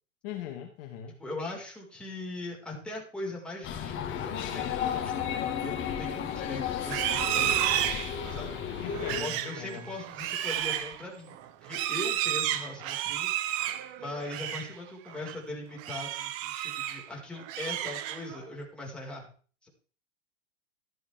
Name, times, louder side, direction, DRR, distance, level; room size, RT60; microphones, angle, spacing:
voice 1, 0.2-1.1 8.8-9.9, left 10 dB, 50° left, 3 dB, 2.2 m, -40 dB
voice 2, 1.2-7.9 8.3-19.3 19.6-19.7, left 2 dB, 5° left, -3 dB, 5.9 m, -40 dB
sound 1, 3.6-9.2, left 8 dB, 30° left, 2.1 m, -33 dB
Livestock farm animals working animals, 6.8-14.7 15.1-15.4 15.8-17.1 17.4-18.4, right 12 dB, 40° right, 1.4 m, -32 dB
14.0 x 10.5 x 3.8 m, 0.42 s
hypercardioid pair, 105°, 37 cm